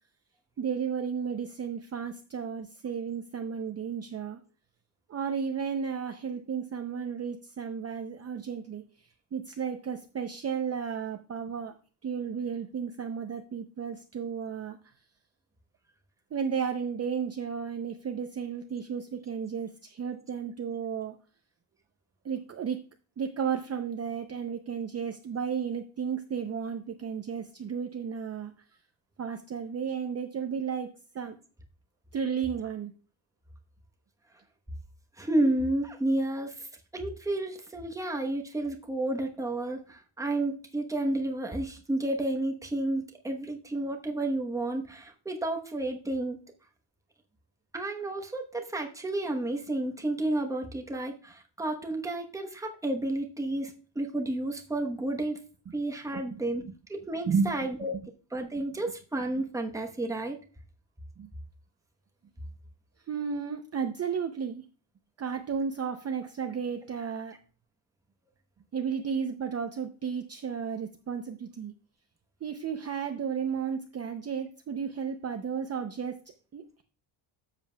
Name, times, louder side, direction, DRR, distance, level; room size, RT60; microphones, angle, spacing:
voice 1, 0.6-4.4 5.1-8.8 9.3-11.7 12.0-14.8 16.3-21.1 22.2-22.8 23.2-28.5 29.2-31.4 32.1-32.9 56.3-56.7 57.3-58.0 61.2-61.3 63.1-64.6 65.2-67.4 68.7-71.7 72.4-76.2 76.5-76.8, right 6 dB, 30° right, 6 dB, 0.6 m, -33 dB
voice 2, 35.2-36.7 36.9-46.4 47.7-55.4 55.7-56.6 56.9-58.0 58.3-60.4, right 1 dB, 5° right, 2 dB, 0.9 m, -31 dB
12.0 x 7.6 x 2.2 m, 0.38 s
cardioid pair, 165°, 48 cm